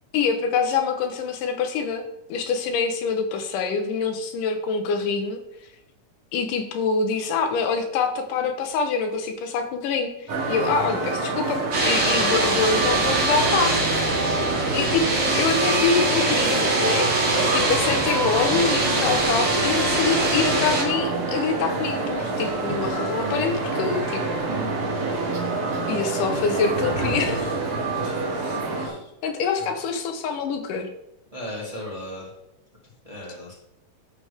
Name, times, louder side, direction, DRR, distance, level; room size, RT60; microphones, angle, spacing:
voice 1, 0.1-2.0 2.3-5.4 6.3-14.2 14.7-15.1 15.4-17.1 17.5-24.2 25.9-27.6 29.2-30.9, left 5 dB, 80° left, 5 dB, 2.4 m, -25 dB
sound 1, 10.3-28.9, right 3 dB, 85° right, 3.9 m, -27 dB
sound 2, 11.7-20.8, right 2 dB, 45° right, 1.8 m, -23 dB
voice 2, 28.0-29.1 29.6-29.7 31.3-32.3 33.0-33.5, left 1 dB, 15° right, -5 dB, 1.8 m, -37 dB
12.0 x 6.8 x 3.5 m, 0.86 s
omnidirectional pair, 3.8 m